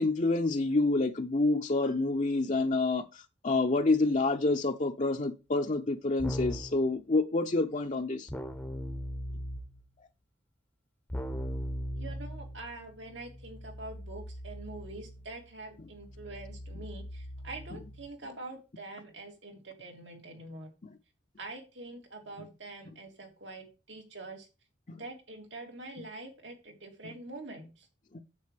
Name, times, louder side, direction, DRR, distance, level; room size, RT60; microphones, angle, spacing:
voice 1, 0.0-8.3 24.9-25.0 28.1-28.2, left 2 dB, 40° left, 0.7 m, -28 dB
Keyboard (musical), 6.2-6.8 8.3-9.9 11.1-18.1, equal, 10° left, 0.8 m, -40 dB
voice 2, 12.0-20.7 21.4-24.5 24.9-27.9, right 2 dB, 85° right, 3.4 m, -45 dB
9.6 x 7.6 x 3.4 m
head